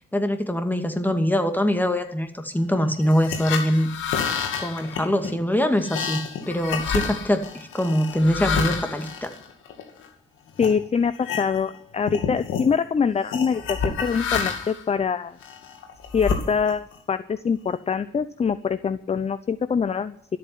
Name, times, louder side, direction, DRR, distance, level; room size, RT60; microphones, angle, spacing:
voice 1, 0.1-3.9 4.6-6.2 6.5-9.3, equal, 10° left, 7 dB, 2.4 m, -23 dB
sound 1, 3.0-10.1 10.6-10.8 11.1-11.8 12.0-12.7 13.3-14.8 15.4-16.9, left 6 dB, 85° left, 2.5 m, -29 dB
voice 2, 10.6-15.4 16.1-20.2, left 6 dB, 30° left, 14 dB, 0.7 m, -24 dB
13.0 x 8.5 x 9.5 m, 0.65 s
cardioid pair, 90°, 20 cm